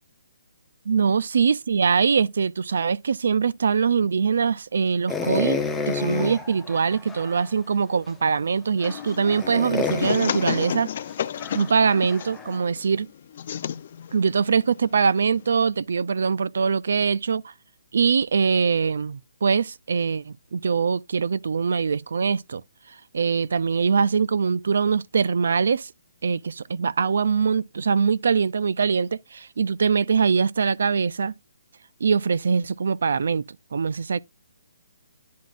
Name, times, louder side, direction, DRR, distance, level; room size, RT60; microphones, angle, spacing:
voice 1, 0.9-5.6 5.9-10.9 11.5-13.1 14.1-17.4 17.9-22.6 23.1-25.9 26.2-31.3 32.0-33.4 33.7-34.2, right 5 dB, 70° right, 0.3 m, -23 dB
sound 1, 5.1-7.5 8.1-8.2 8.8-12.6, left 4 dB, 5° left, 0.6 m, -31 dB
sound 2, 8.8-15.5, left 9 dB, 45° left, 0.4 m, -32 dB
10.0 x 4.0 x 2.4 m
hypercardioid pair, 160°, 0 cm